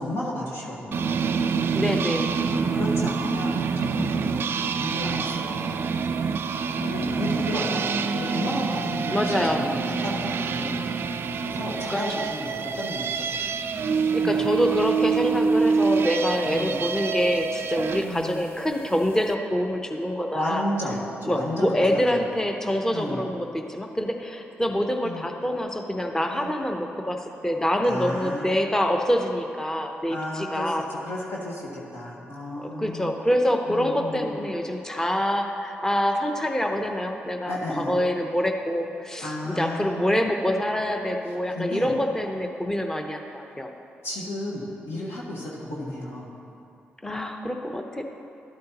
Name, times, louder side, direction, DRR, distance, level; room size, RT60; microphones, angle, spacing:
voice 1, 0.0-1.4 2.5-4.4 4.8-6.2 6.7-10.8 11.4-13.5 14.1-14.5 16.4-16.8 18.0-18.4 20.3-22.2 22.9-23.3 25.0-25.2 26.3-26.5 27.8-28.5 30.1-33.1 33.7-34.4 37.4-38.0 39.2-40.2 41.5-41.9 44.0-46.3, left 1 dB, 70° left, -5 dB, 1.6 m, -33 dB
sound 1, 0.9-18.1, right 5 dB, 60° right, 0.4 m, -26 dB
voice 2, 1.7-2.4 9.1-9.6 11.9-12.0 14.1-20.6 21.2-30.8 32.6-43.7 47.0-48.0, equal, 10° left, 4 dB, 0.8 m, -26 dB
12.5 x 8.5 x 2.9 m, 2.7 s
supercardioid pair, 60°, 4 cm